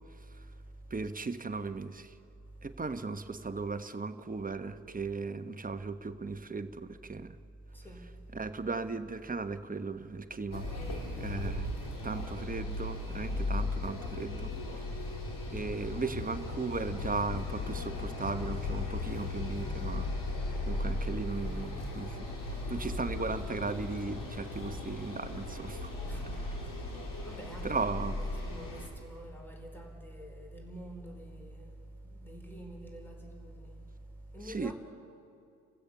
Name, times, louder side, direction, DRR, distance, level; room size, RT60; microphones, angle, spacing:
voice 1, 0.4-1.0 2.5-2.7 7.7-8.4 15.3-15.7 20.6-20.8 26.0-27.9 28.3-34.7, right 1 dB, 5° left, 4.5 m, -47 dB
voice 2, 0.9-2.2 2.6-7.4 8.3-10.7 11.2-11.7 12.0-14.9 15.5-20.1 20.7-25.9 27.6-28.2 34.5-34.7, right 4 dB, 20° right, 1.2 m, -37 dB
sound 1, 10.5-28.9, left 2 dB, 45° left, 4.2 m, -37 dB
29.0 x 15.5 x 7.0 m
hypercardioid pair, 50°, 43 cm